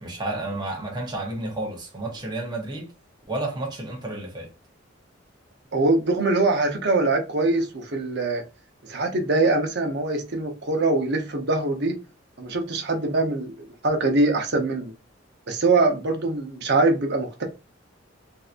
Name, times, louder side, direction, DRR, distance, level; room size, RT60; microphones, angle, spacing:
voice 1, 0.0-2.9 3.3-4.5, right 2 dB, 20° right, 0.8 m, -31 dB
voice 2, 5.7-8.4 8.8-12.0 12.4-14.9 15.5-17.4, right 2 dB, 55° right, 0.8 m, -23 dB
3.6 x 2.7 x 2.5 m
head